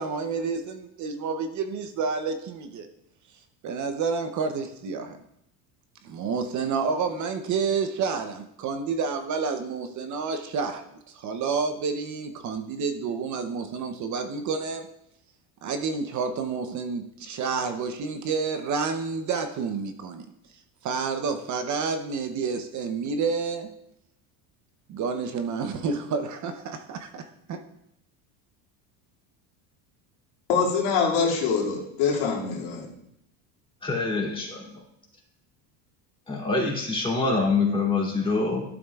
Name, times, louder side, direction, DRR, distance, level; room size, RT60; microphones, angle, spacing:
voice 1, 0.0-2.9 3.6-5.2 6.0-10.8 11.1-14.9 15.6-20.3 20.8-23.7 24.9-27.6, right 5 dB, 40° right, 7 dB, 0.8 m, -29 dB
voice 2, 30.5-32.9, left 5 dB, 80° left, -3 dB, 2.5 m, -24 dB
voice 3, 33.8-34.8 36.3-38.7, left 3 dB, 10° left, -3 dB, 2.7 m, -25 dB
12.5 x 7.2 x 2.4 m, 0.76 s
cardioid pair, 125°, 44 cm